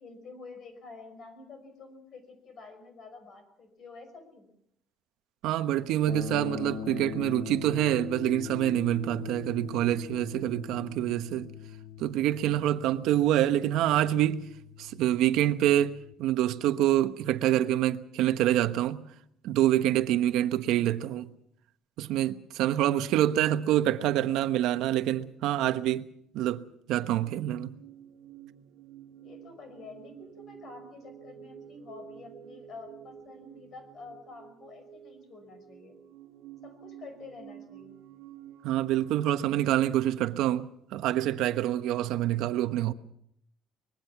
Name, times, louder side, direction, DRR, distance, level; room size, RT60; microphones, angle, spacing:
voice 1, 0.0-4.5 29.2-35.9 36.6-38.0, left 3 dB, 35° left, 5.6 m, -48 dB
voice 2, 5.4-11.5 12.0-14.5 14.8-19.0 19.4-21.3 22.0-26.1 26.3-27.7 38.6-42.9, right 12 dB, 65° right, 1.1 m, -26 dB
sound 1, 6.0-16.1, left 8 dB, 75° left, 3.0 m, -42 dB
sound 2, 27.2-39.2, right 10 dB, 85° right, 1.8 m, -50 dB
24.5 x 21.5 x 6.0 m
cardioid pair, 175°, 0 cm